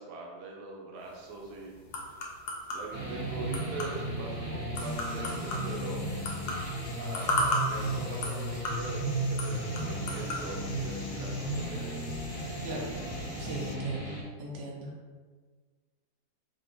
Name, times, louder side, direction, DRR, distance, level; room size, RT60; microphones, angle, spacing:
voice 1, 0.0-2.2 2.7-6.1 7.0-12.0, right 3 dB, 85° right, -1 dB, 1.3 m, -42 dB
sound 1, 1.0-10.5, left 1 dB, 90° left, 1.3 m, -36 dB
sound 2, 2.9-14.2, right 1 dB, 10° right, 0.9 m, -35 dB
sound 3, 4.7-13.7, left 3 dB, 70° left, 0.9 m, -48 dB
voice 2, 12.6-12.9 13.4-14.9, right 1 dB, 55° right, -3 dB, 1.0 m, -39 dB
5.2 x 2.3 x 3.0 m, 1.5 s
omnidirectional pair, 1.7 m